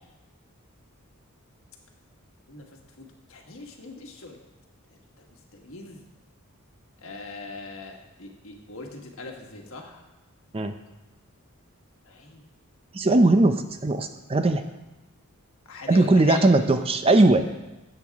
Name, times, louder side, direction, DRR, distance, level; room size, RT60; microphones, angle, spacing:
voice 1, 3.0-4.4 5.5-6.0 7.0-10.0 12.1-12.4 15.7-16.5, left 3 dB, 65° left, 1 dB, 1.5 m, -40 dB
voice 2, 12.9-14.6 15.9-17.4, right 2 dB, 25° right, 8 dB, 0.5 m, -19 dB
13.5 x 7.9 x 3.5 m, 1.0 s
head